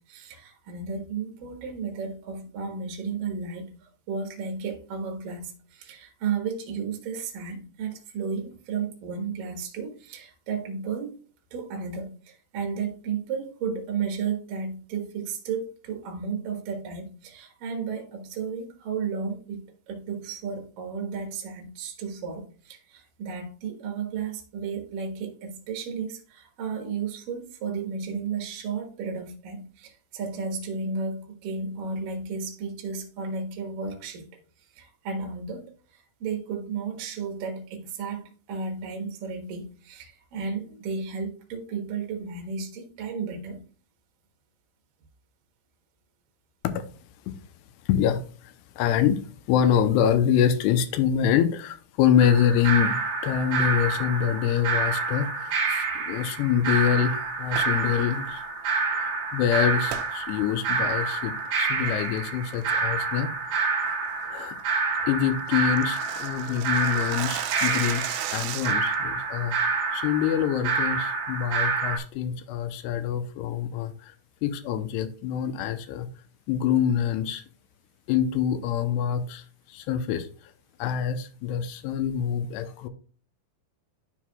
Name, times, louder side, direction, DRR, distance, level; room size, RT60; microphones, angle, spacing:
voice 1, 0.0-11.2 11.5-34.3 34.7-35.6 35.9-43.6 65.0-65.1, right 5 dB, 60° right, 2.6 m, -33 dB
voice 2, 47.9-49.2 49.5-53.0 53.2-58.4 59.0-63.6 64.2-64.6 65.1-69.6 69.9-74.2 74.4-76.1 76.5-77.4 78.1-80.5 80.8-82.9, left 9 dB, 80° left, 2.6 m, -25 dB
sound 1, 52.2-72.0, right 4 dB, 45° right, 2.1 m, -28 dB
sound 2, 57.5-57.8 59.9-60.1 60.6-60.7 61.2-61.5 61.9-62.2 62.5-62.8 63.2-63.3 63.7-63.9 64.3-64.4 64.7-64.8 65.0-65.1 65.3-69.0, right 13 dB, 80° right, 2.5 m, -35 dB
13.0 x 4.6 x 2.3 m
omnidirectional pair, 5.2 m